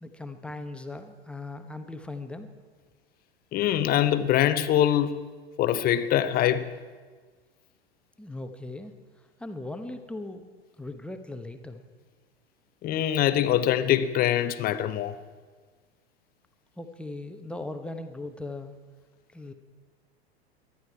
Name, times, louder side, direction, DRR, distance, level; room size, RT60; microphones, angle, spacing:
voice 1, 0.0-2.5 8.2-8.9 9.4-10.4 10.8-11.8 16.8-18.7 19.3-19.5, left 2 dB, 5° left, 1.0 m, -38 dB
voice 2, 3.5-5.3 5.6-6.7 12.8-15.2, left 11 dB, 30° left, 0.8 m, -23 dB
19.0 x 12.5 x 4.7 m
figure-of-eight pair, 85°, 32 cm